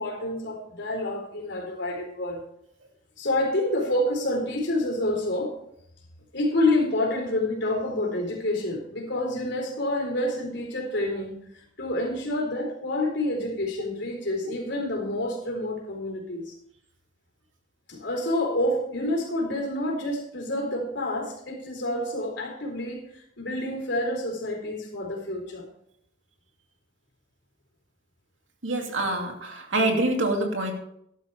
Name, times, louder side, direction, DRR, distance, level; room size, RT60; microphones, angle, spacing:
voice 1, 0.0-2.4 3.2-5.5 6.3-16.5 17.9-25.6, left 1 dB, 65° left, 0 dB, 4.0 m, -28 dB
voice 2, 28.6-30.7, right 2 dB, 90° right, 2 dB, 2.6 m, -25 dB
12.5 x 12.0 x 3.5 m, 0.73 s
head